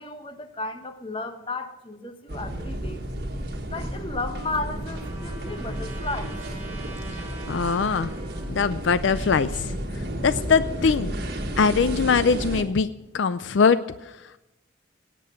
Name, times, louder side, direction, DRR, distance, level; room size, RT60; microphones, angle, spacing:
voice 1, 0.0-3.0 3.7-6.3, left 3 dB, 25° left, 8 dB, 1.0 m, -34 dB
sound 1, 2.3-12.6, right 1 dB, 50° right, 1.5 m, -32 dB
Trumpet, 3.8-8.5, right 2 dB, 10° right, 3.0 m, -45 dB
voice 2, 7.5-8.1 8.5-9.7 10.2-11.1 11.6-12.9 13.1-13.8, left 5 dB, 70° left, 14 dB, 0.4 m, -21 dB
18.0 x 7.7 x 6.5 m, 0.95 s
head